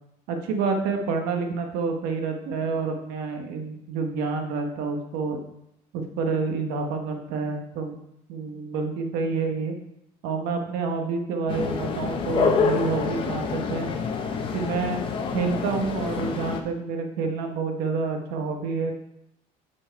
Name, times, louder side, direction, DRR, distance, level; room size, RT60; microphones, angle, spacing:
voice 1, 0.3-5.4 5.9-8.0 8.3-9.7 10.2-13.9 14.5-15.0 15.3-18.9, right 4 dB, 75° right, 4 dB, 1.1 m, -28 dB
sound 1, 11.5-16.6, left 6 dB, 35° left, 0.7 m, -27 dB
7.6 x 4.5 x 4.5 m, 0.79 s
cardioid pair, 165°, 16 cm